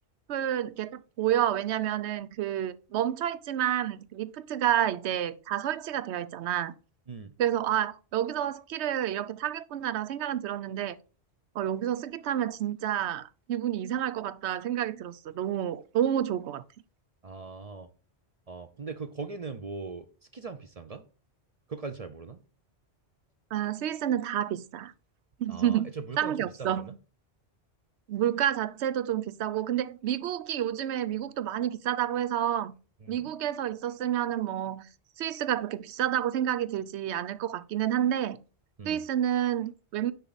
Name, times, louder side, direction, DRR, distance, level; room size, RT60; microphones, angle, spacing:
voice 1, 0.3-6.7 7.4-11.0 11.5-16.6 23.5-24.9 25.4-25.9 26.2-26.9 28.1-32.7 33.1-34.8 35.2-38.4 38.8-40.1, right 11 dB, 85° right, 0.9 m, -29 dB
voice 2, 17.2-17.9 18.5-20.1 20.3-21.0 21.7-22.4 25.5-27.0 33.0-33.3 38.8-39.0, right 4 dB, 40° right, 0.6 m, -40 dB
6.5 x 5.7 x 4.0 m
omnidirectional pair, 1.1 m